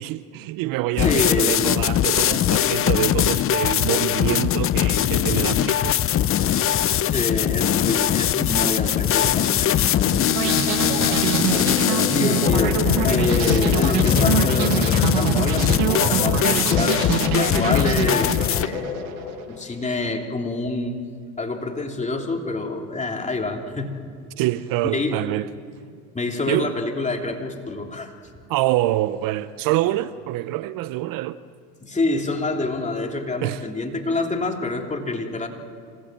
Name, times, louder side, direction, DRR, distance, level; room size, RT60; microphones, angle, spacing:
voice 1, 0.0-6.0 13.4-13.6 24.4-25.5 26.5-26.7 28.5-31.4 33.4-33.6, right 16 dB, 55° right, 0.8 m, -25 dB
sound 1, 1.0-18.7, left 11 dB, 35° left, 0.7 m, -21 dB
voice 2, 1.0-1.6 7.0-19.1 19.5-21.0 21.4-23.9 24.9-25.2 26.1-28.1 31.8-35.5, left 2 dB, 15° left, 3.0 m, -27 dB
sound 2, 10.4-19.4, right 11 dB, 70° right, 1.5 m, -25 dB
sound 3, 11.4-19.8, left 8 dB, 75° left, 2.5 m, -35 dB
26.5 x 18.0 x 7.6 m
hypercardioid pair, 90°, 41 cm